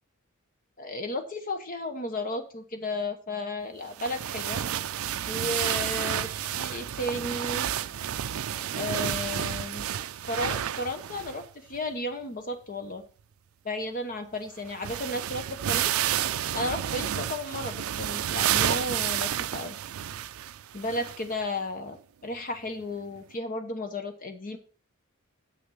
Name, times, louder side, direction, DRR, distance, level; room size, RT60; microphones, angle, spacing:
voice 1, 0.8-4.6 5.3-7.7 8.7-9.9 10.3-13.0 13.6-15.9 16.5-19.7 20.7-22.0 22.2-24.6, left 2 dB, 40° left, 7 dB, 1.0 m, -34 dB
sound 1, 4.0-11.5 11.7-11.8 14.3-14.4 14.6-21.3 21.9-22.0 23.1-23.2, right 10 dB, 75° right, 0.4 m, -30 dB
7.6 x 6.7 x 5.7 m, 0.39 s
head